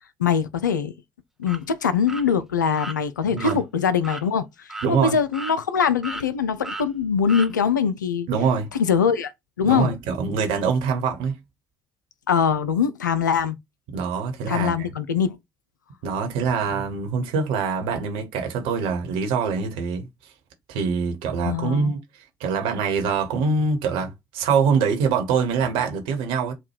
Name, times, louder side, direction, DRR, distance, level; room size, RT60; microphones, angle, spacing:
voice 1, 0.2-0.9 1.4-8.3 8.7-9.3 9.6-9.9 12.3-13.6 14.5-15.4 21.4-21.9, left 7 dB, 85° left, 0.3 m, -22 dB
sound 1, 1.4-1.6 2.1-2.2 2.7-3.0 3.4-3.5 4.0-4.3 4.7-4.9 5.3-5.8 6.0-6.3 6.6-6.9 7.3-7.5, right 2 dB, 5° right, 0.6 m, -34 dB
voice 2, 3.3-3.6 4.8-5.2 8.3-8.7 9.6-11.4 13.9-14.7 16.0-20.1 20.7-22.0 22.4-26.5, right 5 dB, 70° right, 1.1 m, -24 dB
4.4 x 2.2 x 4.6 m
figure-of-eight pair, 45°, 10 cm